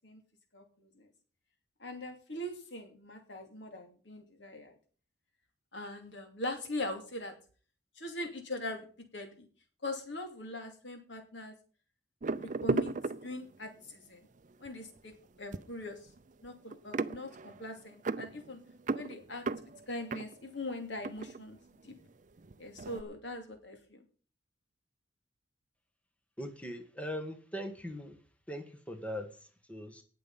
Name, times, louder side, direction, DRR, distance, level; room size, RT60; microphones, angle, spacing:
voice 1, 1.8-4.8 5.7-7.3 8.0-8.9 9.1-9.5 9.8-11.5 12.4-12.9 13.2-14.2 14.6-15.1 15.4-16.0 16.4-18.6 18.9-21.6 21.8-21.9 22.6-24.0, left 1 dB, 75° left, 5 dB, 2.7 m, -41 dB
sound 1, 12.2-13.8 14.5-14.7 15.0-22.1 22.4-23.0, right 3 dB, 45° right, 0.5 m, -36 dB
voice 2, 26.4-28.2 28.5-30.0, equal, 5° left, 5 dB, 1.4 m, -41 dB
18.5 x 6.8 x 5.5 m, 0.41 s
head